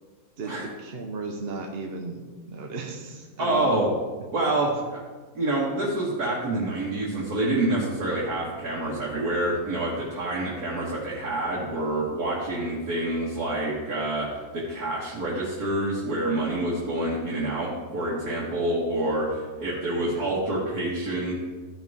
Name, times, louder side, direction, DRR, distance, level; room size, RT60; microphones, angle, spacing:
voice 1, 0.4-3.8 4.4-4.5 19.6-20.3, right 3 dB, 50° right, 1 dB, 0.9 m, -36 dB
voice 2, 3.4-3.9 4.3-5.0 5.3-21.3, right 1 dB, 80° right, -7 dB, 2.2 m, -27 dB
13.5 x 6.0 x 3.6 m, 1.3 s
omnidirectional pair, 1.6 m